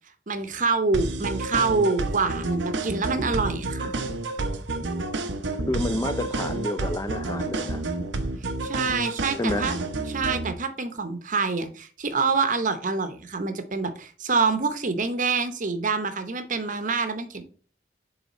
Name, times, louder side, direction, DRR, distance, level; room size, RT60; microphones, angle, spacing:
voice 1, 0.3-3.9 8.6-9.8 10.1-17.4, right 4 dB, 45° right, 0.8 m, -26 dB
sound 1, 0.9-10.5, right 2 dB, 90° right, 0.7 m, -30 dB
voice 2, 5.7-7.8 9.4-9.7, left 1 dB, 20° left, 0.4 m, -29 dB
7.1 x 3.5 x 4.1 m
head